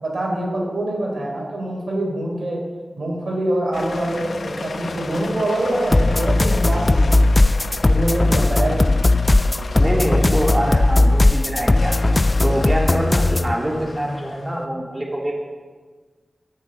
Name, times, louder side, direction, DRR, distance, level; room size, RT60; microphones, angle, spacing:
voice 1, 0.0-2.7 3.0-7.2 7.9-9.1, right 1 dB, 75° right, -1 dB, 4.0 m, -25 dB
sound 1, 3.7-14.6, left 3 dB, 85° left, 0.8 m, -34 dB
sound 2, 5.9-13.5, left 2 dB, 40° left, 0.4 m, -17 dB
voice 2, 9.8-11.9 12.4-15.3, right 1 dB, 30° right, -2 dB, 3.0 m, -24 dB
13.0 x 6.9 x 8.9 m, 1.4 s
cardioid pair, 50°, 0 cm